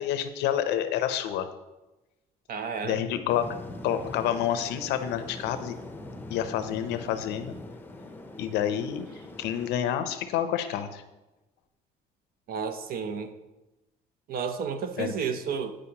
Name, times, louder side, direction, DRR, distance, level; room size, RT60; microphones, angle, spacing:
voice 1, 0.0-1.5 2.8-3.5 3.8-5.8 6.3-7.5 8.4-9.1 9.4-11.0 15.0-15.1, left 10 dB, 90° left, 10 dB, 0.6 m, -28 dB
voice 2, 2.5-3.0 12.5-13.3 14.3-15.8, right 6 dB, 60° right, 9 dB, 0.7 m, -32 dB
sound 1, 3.3-9.7, left 2 dB, 10° left, 0.6 m, -42 dB
9.7 x 5.0 x 2.9 m, 1.0 s
cardioid pair, 110°, 17 cm